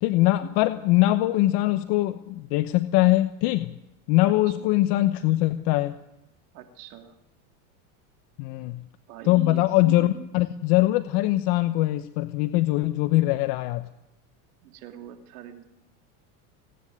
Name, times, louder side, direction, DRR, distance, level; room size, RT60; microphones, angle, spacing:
voice 1, 0.0-3.7 4.1-5.9 8.4-8.8 9.3-13.9, left 17 dB, 60° left, 10 dB, 1.1 m, -22 dB
voice 2, 4.2-4.7 6.5-7.2 9.1-10.3 14.6-15.6, right 10 dB, 80° right, 5 dB, 3.0 m, -42 dB
29.0 x 10.0 x 9.4 m, 0.89 s
supercardioid pair, 120°, 44 cm